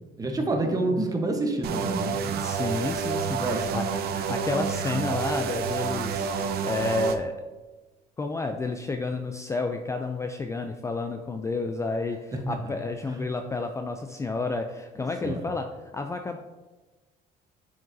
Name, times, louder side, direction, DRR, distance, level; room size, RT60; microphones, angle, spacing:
voice 1, 0.2-2.5 3.4-3.7 12.3-12.4 13.1-13.2 15.2-15.4, right 2 dB, 20° right, 3 dB, 1.0 m, -28 dB
sound 1, 1.6-7.2, right 6 dB, 70° right, 0.6 m, -29 dB
voice 2, 2.4-7.4 8.2-15.7 15.9-16.4, left 3 dB, 15° left, 5 dB, 0.4 m, -31 dB
9.2 x 5.1 x 2.7 m, 1.2 s
cardioid pair, 110°, 17 cm